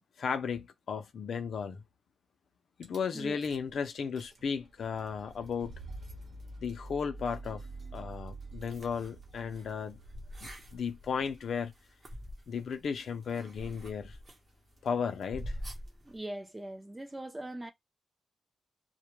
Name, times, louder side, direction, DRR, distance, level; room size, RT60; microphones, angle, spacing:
voice 1, 0.2-1.8 2.8-5.7 6.6-7.7 7.9-10.0 10.4-11.7 12.5-14.2 14.8-15.6, left 6 dB, 70° left, 0.4 m, -35 dB
Rattle / Car / Engine starting, 2.8-3.0 3.4-3.7 4.0-11.8, right 2 dB, 60° right, 0.9 m, -48 dB
sound 1, 4.8-16.2, equal, 35° right, 0.8 m, -48 dB
voice 2, 16.0-17.7, right 1 dB, 15° right, 0.4 m, -41 dB
2.2 x 2.1 x 3.0 m
wide cardioid pair, 135°, 0 cm